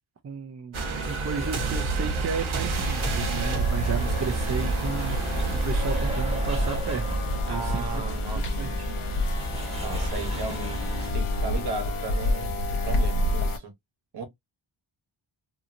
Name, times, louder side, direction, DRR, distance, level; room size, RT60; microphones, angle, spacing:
voice 1, 0.2-0.7 1.1-7.8 8.1-9.0, right 6 dB, 35° right, 0.4 m, -34 dB
sound 1, 0.7-11.1, right 1 dB, 15° right, 1.0 m, -32 dB
sound 2, 0.7-8.9 9.3-9.5, right 4 dB, 75° right, 0.9 m, -31 dB
sound 3, 2.7-13.6, left 1 dB, 80° left, 0.8 m, -29 dB
voice 2, 3.8-4.2 7.4-8.8 9.8-13.7 14.1-14.2, right 4 dB, 55° right, 1.0 m, -36 dB
2.7 x 2.6 x 2.5 m
wide cardioid pair, 150°, 48 cm